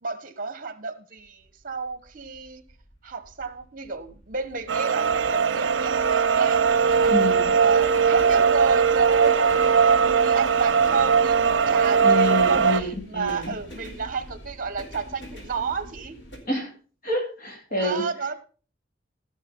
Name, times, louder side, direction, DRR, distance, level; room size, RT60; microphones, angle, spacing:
voice 1, 0.0-2.6 3.0-7.1 7.6-11.4 11.7-16.2 17.8-18.3, right 4 dB, 45° right, 1.4 m, -32 dB
sound 1, 1.2-16.4, equal, 70° left, 3.4 m, -44 dB
sound 2, 4.7-12.8, right 6 dB, 75° right, 0.7 m, -20 dB
voice 2, 7.1-7.5 12.0-13.5 16.4-16.7 17.0-18.0, left 1 dB, 45° left, 3.2 m, -27 dB
16.0 x 6.4 x 5.4 m
head